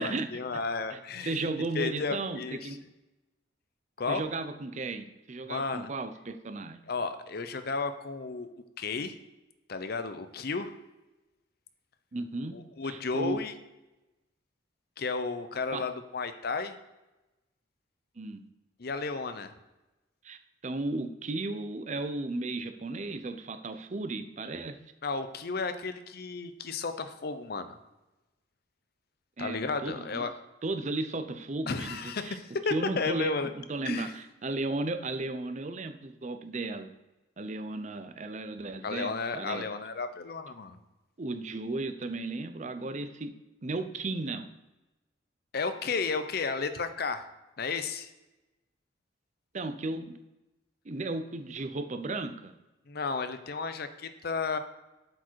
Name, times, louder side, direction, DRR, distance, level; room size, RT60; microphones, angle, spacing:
voice 1, 0.0-1.4 1.7-2.8 4.0-4.2 5.5-5.9 6.9-9.2 9.7-10.7 12.5-13.5 15.0-16.7 18.8-19.5 25.0-27.8 29.4-30.3 31.7-33.5 33.9-34.1 38.8-40.8 45.5-47.3 47.6-48.1 52.9-54.6, left 4 dB, 55° left, 9 dB, 0.6 m, -33 dB
voice 2, 0.9-2.8 4.1-6.8 12.1-12.6 12.8-13.4 15.7-15.8 18.2-18.4 20.2-24.8 29.4-30.3 30.6-32.4 32.7-36.9 37.4-39.7 41.2-43.3 43.6-44.5 49.5-50.2 50.8-52.5, right 2 dB, 40° right, 8 dB, 0.6 m, -35 dB
7.8 x 4.8 x 4.5 m, 1.0 s
head